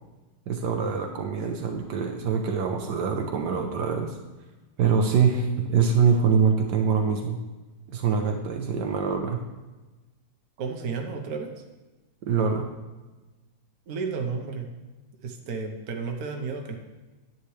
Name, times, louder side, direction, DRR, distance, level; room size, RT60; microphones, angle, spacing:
voice 1, 0.5-4.2 4.8-7.4 7.9-9.4 12.2-12.7, right 6 dB, 80° right, 3 dB, 1.4 m, -24 dB
voice 2, 10.6-11.5 13.9-14.7 15.2-16.8, right 5 dB, 60° right, 3 dB, 1.4 m, -32 dB
10.0 x 9.1 x 3.2 m, 1.2 s
omnidirectional pair, 1.8 m